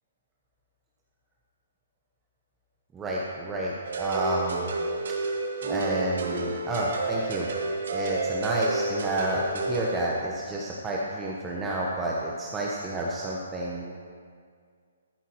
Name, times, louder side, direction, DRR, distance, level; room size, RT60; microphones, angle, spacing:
voice 1, 2.9-4.7 5.6-7.5 7.9-14.0, right 1 dB, 10° right, -4 dB, 0.9 m, -30 dB
sound 1, 3.8-10.0, right 2 dB, 70° right, 1.6 m, -30 dB
13.5 x 11.5 x 3.0 m, 2.1 s
hypercardioid pair, 155°, 0 cm